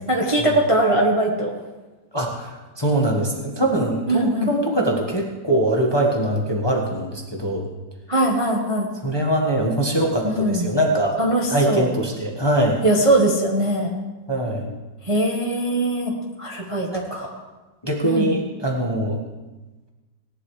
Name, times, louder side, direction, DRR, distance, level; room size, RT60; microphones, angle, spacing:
voice 1, 0.1-1.5 4.1-4.5 8.1-8.9 10.2-10.7 11.2-11.8 12.8-13.9 15.0-16.1 16.4-17.3 18.0-18.3, right 1 dB, 20° right, -1 dB, 1.0 m, -21 dB
voice 2, 2.1-7.7 9.0-11.2 11.5-12.8 14.3-14.7 16.8-17.3 17.8-19.2, right 1 dB, 15° left, -1 dB, 1.1 m, -22 dB
18.5 x 11.0 x 3.2 m, 1.2 s
omnidirectional pair, 2.0 m